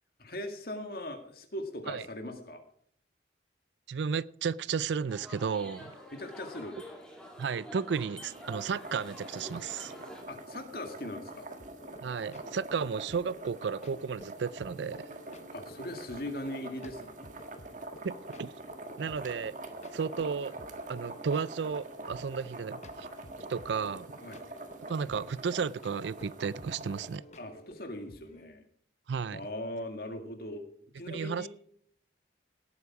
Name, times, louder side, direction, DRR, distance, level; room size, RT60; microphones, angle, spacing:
voice 1, 0.2-2.6 6.1-6.8 10.3-11.5 15.5-17.2 24.2-24.4 27.4-28.6 29.3-30.6 31.0-31.5, left 1 dB, 55° left, 1.9 m, -40 dB
voice 2, 3.9-5.9 7.4-9.9 12.0-15.1 18.0-18.5 19.0-19.5 19.9-20.5 20.9-23.1 23.5-24.1 24.9-27.2 29.1-29.4 31.1-31.5, right 6 dB, 75° right, 0.4 m, -33 dB
sound 1, 5.1-10.2, left 1 dB, 5° left, 2.4 m, -48 dB
sound 2, 8.3-27.2, right 2 dB, 45° right, 1.6 m, -45 dB
sound 3, 11.6-28.5, equal, 40° left, 1.0 m, -55 dB
18.0 x 8.4 x 4.8 m
head